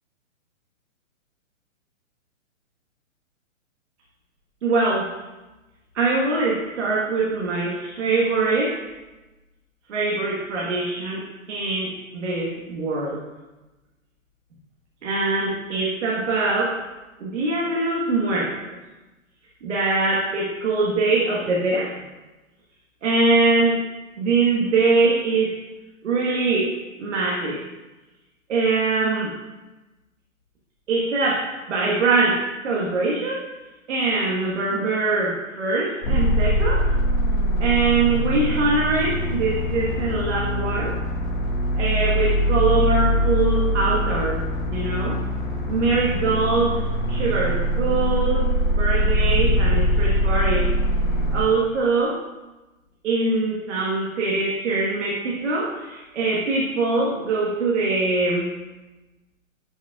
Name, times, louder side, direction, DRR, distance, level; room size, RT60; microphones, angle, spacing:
voice 1, 4.6-5.1 5.9-8.8 9.9-13.2 15.0-16.8 17.2-18.8 19.6-21.9 23.0-23.8 24.2-25.6 26.0-26.7 27.0-27.6 28.5-29.3 30.9-33.5 33.9-36.8 37.6-40.9 41.8-45.2 45.7-46.8 47.1-50.7 51.3-52.2 53.0-58.5, right 3 dB, 60° right, -5 dB, 1.6 m, -23 dB
sound 1, 36.0-51.4, equal, 35° left, 1.8 m, -22 dB
11.0 x 5.4 x 2.4 m, 1.1 s
hypercardioid pair, 165°, 41 cm